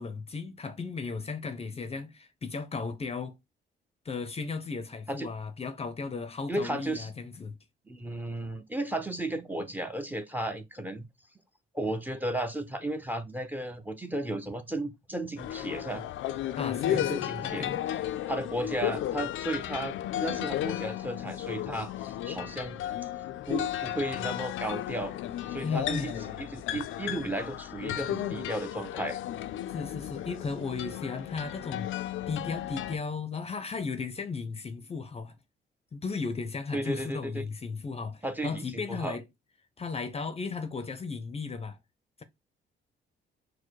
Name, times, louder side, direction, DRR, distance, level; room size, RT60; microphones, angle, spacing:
voice 1, 0.0-3.3 4.0-7.6 16.6-17.8 25.6-26.2 29.7-35.3 35.9-39.2 39.8-41.8 42.2-42.3, left 4 dB, 30° left, 0.6 m, -35 dB
voice 2, 6.5-7.1 7.9-11.1 11.7-16.0 16.9-18.0 18.3-19.9 20.2-22.8 23.5-25.1 25.5-29.2 36.7-37.5 38.2-39.2, right 1 dB, 10° right, 0.7 m, -34 dB
sound 1, 15.4-33.0, left 12 dB, 75° left, 0.4 m, -34 dB
4.5 x 2.2 x 4.5 m
cardioid pair, 90°, 20 cm